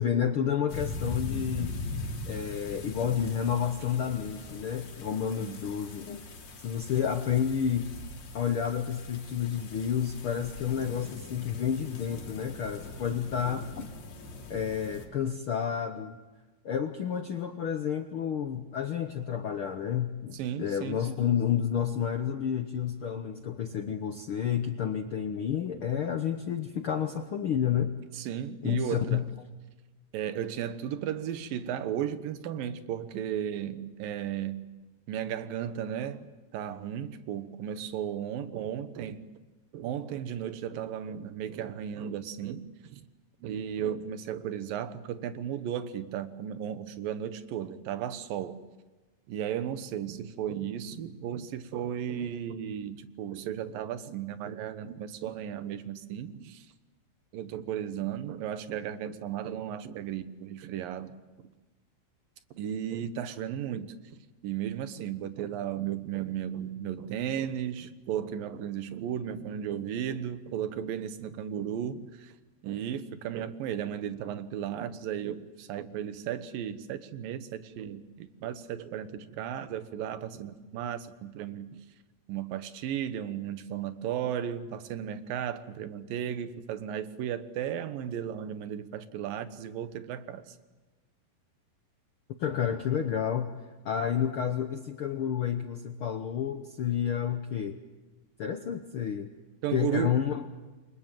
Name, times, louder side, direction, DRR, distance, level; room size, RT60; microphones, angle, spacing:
voice 1, 0.0-1.8 2.3-6.3 6.6-7.9 8.3-13.9 14.5-16.2 16.6-27.9 28.6-29.2 92.4-93.5 93.8-97.8 98.4-99.3 99.7-100.5, left 8 dB, 70° left, 7 dB, 1.2 m, -30 dB
sound 1, 0.7-15.1, left 3 dB, 85° left, 4.7 m, -41 dB
voice 2, 20.3-21.0 28.1-29.3 30.1-34.7 35.1-39.2 39.7-43.1 43.4-48.6 49.3-56.7 57.3-61.2 62.5-63.9 64.4-72.3 72.6-81.8 82.3-90.6 99.6-100.2, right 9 dB, 90° right, 12 dB, 2.9 m, -35 dB
29.0 x 24.0 x 7.5 m, 1.2 s
omnidirectional pair, 3.9 m